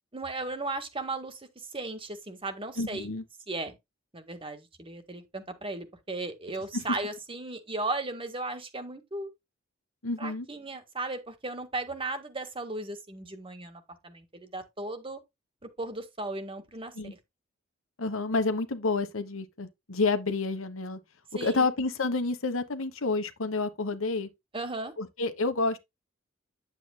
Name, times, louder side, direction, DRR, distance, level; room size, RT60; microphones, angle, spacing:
voice 1, 0.1-3.1 3.5-3.8 4.1-9.3 10.2-15.2 15.6-16.9 21.4-21.7 24.5-24.9, right 2 dB, 25° right, 1.7 m, -36 dB
voice 2, 2.8-3.2 6.7-6.8 10.0-10.5 16.9-17.1 18.0-21.0 21.4-24.3 25.0-25.8, left 3 dB, 90° left, 1.3 m, -29 dB
9.7 x 8.0 x 2.2 m
head